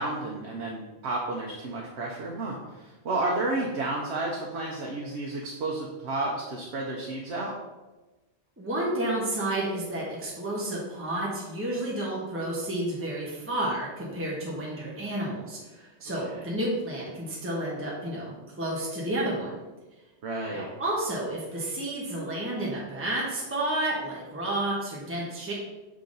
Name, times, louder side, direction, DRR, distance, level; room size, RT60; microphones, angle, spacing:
voice 1, 0.0-7.6 16.2-16.5 20.2-20.7, right 2 dB, 80° right, -1 dB, 1.1 m, -31 dB
voice 2, 8.6-19.5 20.5-25.5, right 1 dB, 15° right, -5 dB, 1.0 m, -31 dB
6.9 x 3.7 x 3.9 m, 1.1 s
omnidirectional pair, 1.1 m